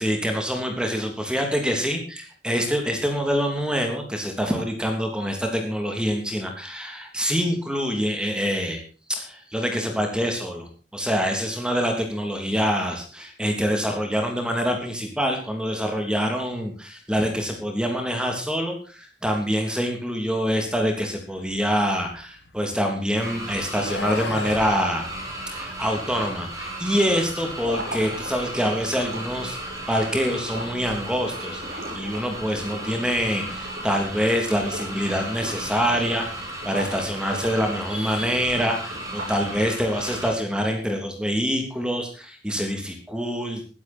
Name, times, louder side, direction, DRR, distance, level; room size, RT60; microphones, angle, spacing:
voice 1, 0.0-8.8 9.1-25.1 25.5-43.7, equal, 5° right, 3 dB, 3.2 m, -25 dB
sound 1, 21.5-23.0 23.7-24.7, left 3 dB, 90° left, 1.6 m, -35 dB
sound 2, 23.2-40.3, right 1 dB, 20° right, 5.1 m, -35 dB
sound 3, 27.6-34.2 34.5-35.0 35.3-37.0 37.3-39.5, equal, 55° right, 6.0 m, -38 dB
16.0 x 14.5 x 4.5 m, 0.35 s
head